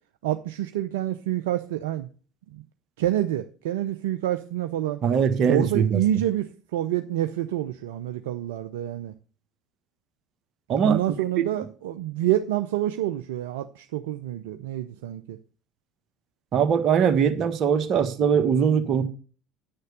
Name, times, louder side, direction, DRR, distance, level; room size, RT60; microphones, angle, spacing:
voice 1, 0.2-2.1 2.5-2.6 3.0-5.0 5.5-6.5 6.7-9.1 10.8-15.4, right 13 dB, 65° right, 0.5 m, -27 dB
voice 2, 5.0-6.0 10.7-11.0 16.5-19.0, right 7 dB, 45° right, 1.3 m, -21 dB
9.5 x 6.5 x 6.6 m
figure-of-eight pair, 65°, 0 cm